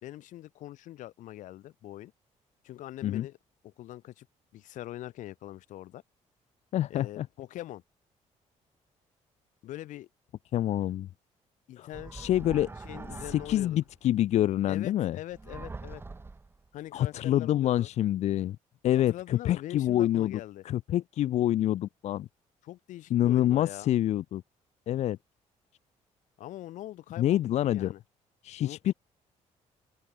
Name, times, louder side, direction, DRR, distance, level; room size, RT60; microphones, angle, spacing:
voice 1, 0.0-2.1 2.6-3.4 3.6-4.3 4.5-6.0 6.9-7.8 9.6-10.1 11.7-12.3 12.8-13.8 14.7-16.0 16.7-17.9 18.9-20.6 22.6-23.9 26.4-28.0 28.6-28.9, left 14 dB, 80° left, 2.1 m, -43 dB
voice 2, 6.7-7.3 10.5-11.1 11.8-12.7 13.3-15.2 16.9-18.6 18.8-20.4 20.6-22.3 23.1-24.4 24.9-25.2 27.2-27.9 28.4-28.9, left 12 dB, 60° left, 0.6 m, -27 dB
sound 1, 11.9-13.9 15.3-16.7, right 3 dB, 20° right, 3.0 m, -43 dB
open air
cardioid pair, 140°, 13 cm